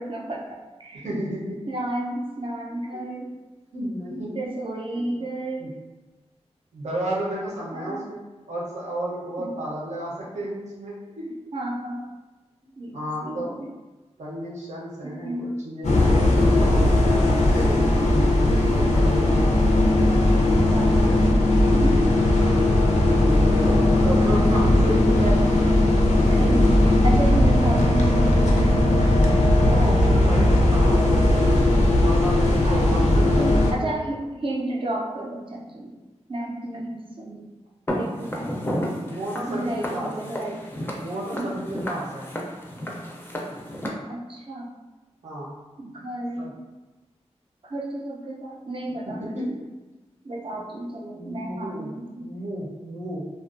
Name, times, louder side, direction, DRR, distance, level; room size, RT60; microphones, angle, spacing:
voice 1, 0.0-1.1 1.7-3.3 4.3-5.7 7.7-8.0 9.4-9.5 11.5-12.1 12.8-13.7 15.0-15.5 19.0-19.4 20.7-21.3 21.7-22.0 26.3-28.4 32.6-35.9 36.3-37.5 38.0-38.5 39.5-40.6 41.3-41.5 44.1-44.7 45.8-46.7 47.6-49.6 50.2-52.3, right 1 dB, 50° right, -1 dB, 0.5 m, -32 dB
voice 2, 1.0-1.6 2.9-3.1 3.7-4.4 4.9-5.2 5.6-5.7 6.7-8.2 8.5-11.3 12.9-13.6 14.2-19.4 22.0-22.1 23.2-25.6 29.3-31.6 32.0-34.0 37.9-38.1 38.8-40.3 41.0-42.3 44.0-44.1 45.2-45.6 46.4-46.5 49.1-49.5 50.5-50.6 51.1-51.9 52.2-53.3, right 1 dB, 80° right, -5 dB, 0.7 m, -32 dB
sound 1, 15.8-33.7, left 1 dB, 90° left, 0.4 m, -18 dB
Walk footsteps, 37.9-43.9, equal, 20° left, 0.4 m, -32 dB
2.5 x 2.2 x 2.4 m, 1.2 s
wide cardioid pair, 80°, 12 cm